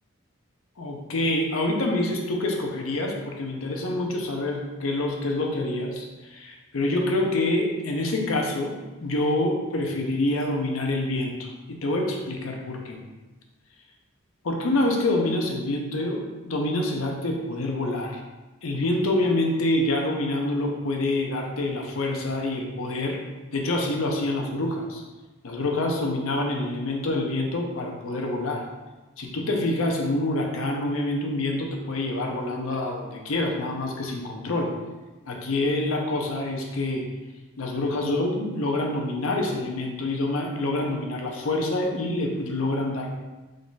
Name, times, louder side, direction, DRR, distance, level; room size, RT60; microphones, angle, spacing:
voice 1, 0.8-8.7 9.0-13.0 14.4-18.2 18.6-23.2 23.5-25.0 25.4-28.6 29.2-34.7 35.3-37.0 37.6-43.1, left 2 dB, 80° left, 1 dB, 0.7 m, -26 dB
3.8 x 2.3 x 3.8 m, 1.2 s
head